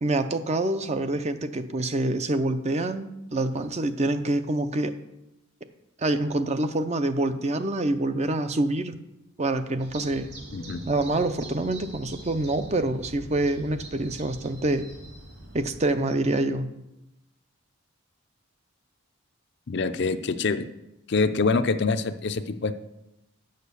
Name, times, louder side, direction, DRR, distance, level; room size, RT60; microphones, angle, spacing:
voice 1, 0.0-4.9 6.0-8.9 9.4-10.3 10.9-14.9 15.5-16.7, right 2 dB, 30° right, 10 dB, 0.6 m, -26 dB
sound 1, 9.8-15.8, right 1 dB, 50° right, 2.8 m, -43 dB
voice 2, 10.5-10.8 19.7-20.7 21.1-22.8, left 4 dB, 55° left, 10 dB, 0.5 m, -25 dB
8.7 x 6.6 x 6.9 m, 0.90 s
head